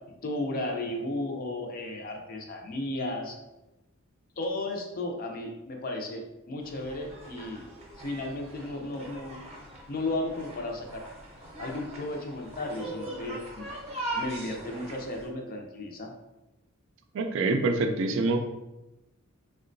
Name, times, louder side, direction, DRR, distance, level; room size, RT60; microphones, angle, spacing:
voice 1, 0.2-3.4 4.4-7.6 8.0-9.4 9.9-11.0 11.6-13.7 14.1-16.1, left 2 dB, 45° left, 2 dB, 0.5 m, -34 dB
sound 1, 6.6-15.3, right 2 dB, 30° right, 0.7 m, -41 dB
voice 2, 17.1-18.4, right 3 dB, 65° right, 6 dB, 0.3 m, -25 dB
3.7 x 2.1 x 2.5 m, 0.98 s
head